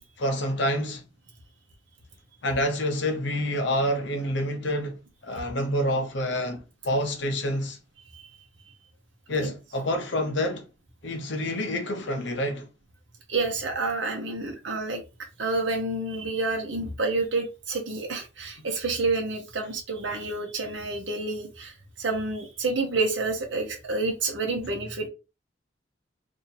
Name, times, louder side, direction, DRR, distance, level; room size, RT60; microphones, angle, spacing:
voice 1, 0.2-1.0 2.4-7.8 9.3-10.6 11.0-12.7, left 1 dB, 70° left, 0.7 m, -28 dB
voice 2, 13.3-15.0 15.4-25.1, right 3 dB, 75° right, 0.8 m, -29 dB
2.7 x 2.7 x 3.9 m
head